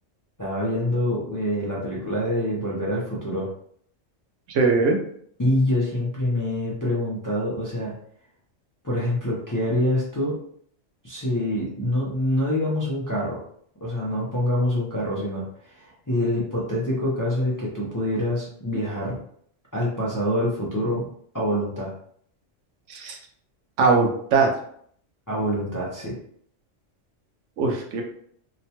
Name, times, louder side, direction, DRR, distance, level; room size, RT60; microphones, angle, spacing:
voice 1, 0.4-3.5 5.4-7.9 8.8-10.3 11.0-13.4 13.8-19.2 19.7-21.0 21.3-21.9 25.3-26.1, left 1 dB, 25° left, -6 dB, 0.4 m, -25 dB
voice 2, 4.5-5.0 22.9-23.2 23.8-24.5 27.6-28.0, right 4 dB, 85° right, 2 dB, 1.0 m, -20 dB
2.9 x 2.2 x 2.8 m, 0.63 s
omnidirectional pair, 1.2 m